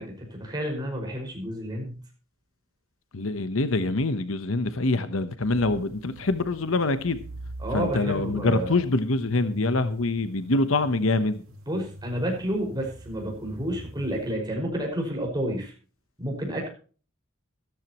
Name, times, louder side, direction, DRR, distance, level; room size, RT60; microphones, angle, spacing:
voice 1, 0.0-2.0 7.6-8.8 11.7-15.7 16.2-16.7, right 1 dB, 20° right, 0 dB, 5.5 m, -30 dB
voice 2, 3.1-7.2 7.7-11.4, left 2 dB, 75° left, 12 dB, 1.0 m, -25 dB
sound 1, 5.4-14.3, equal, 85° right, 2.2 m, -42 dB
14.0 x 13.0 x 3.0 m, 0.38 s
head